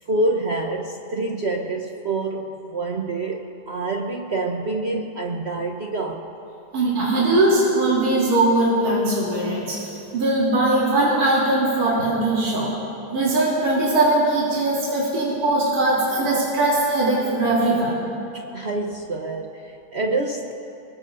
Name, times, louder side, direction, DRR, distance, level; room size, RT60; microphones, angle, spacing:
voice 1, 0.0-6.3 18.3-20.5, right 2 dB, 70° right, 1 dB, 0.6 m, -27 dB
voice 2, 6.7-9.8 10.1-12.7 13.1-18.0, right 2 dB, 45° right, -7 dB, 3.5 m, -20 dB
25.0 x 22.0 x 2.6 m, 2.8 s
omnidirectional pair, 2.3 m